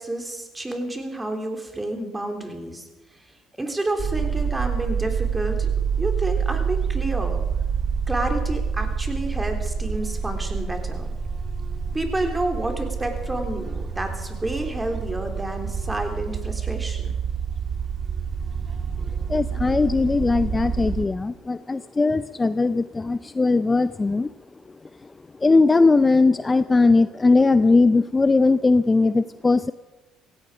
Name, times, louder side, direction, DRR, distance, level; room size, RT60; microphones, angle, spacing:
voice 1, 0.0-5.7 6.0-7.4 8.1-11.1 11.9-17.1, right 1 dB, 15° right, 5 dB, 3.3 m, -30 dB
sound 1, 4.0-21.0, right 6 dB, 40° right, 1.5 m, -27 dB
voice 2, 19.3-24.3 25.0-25.1 25.4-29.7, left 3 dB, 25° left, 14 dB, 0.5 m, -19 dB
16.5 x 16.0 x 4.9 m, 1.1 s
supercardioid pair, 65°, 0 cm